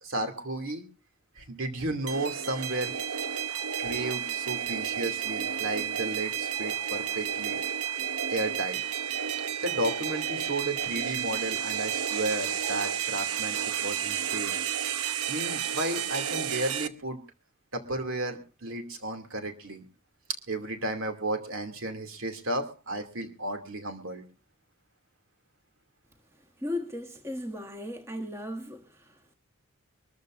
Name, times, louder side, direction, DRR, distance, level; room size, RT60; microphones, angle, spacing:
voice 1, 0.0-0.8 1.4-3.0 3.8-7.6 8.3-8.8 9.6-14.6 15.3-17.2 17.7-19.8 20.5-24.2, right 2 dB, 65° right, 2.6 m, -33 dB
sound 1, 2.1-16.9, right 8 dB, 85° right, 0.9 m, -31 dB
voice 2, 26.6-29.3, left 1 dB, 10° right, 1.4 m, -36 dB
24.5 x 14.0 x 2.6 m
head